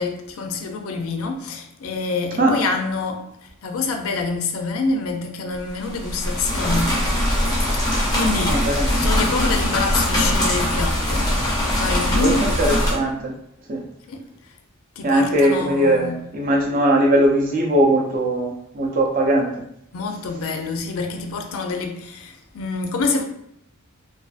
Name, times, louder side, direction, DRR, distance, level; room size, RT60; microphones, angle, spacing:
voice 1, 0.0-6.9 7.7-8.7 8.9-11.3 11.7-12.4 14.1-14.2 15.0-16.2 19.9-23.2, left 3 dB, 75° left, 0.4 m, -26 dB
sound 1, 5.7-12.9, equal, 20° left, 0.5 m, -21 dB
voice 2, 7.9-9.1 12.2-12.3 12.6-13.4 13.7-13.8 15.0-19.5, right 1 dB, 40° right, 0.5 m, -20 dB
2.4 x 2.3 x 2.4 m
head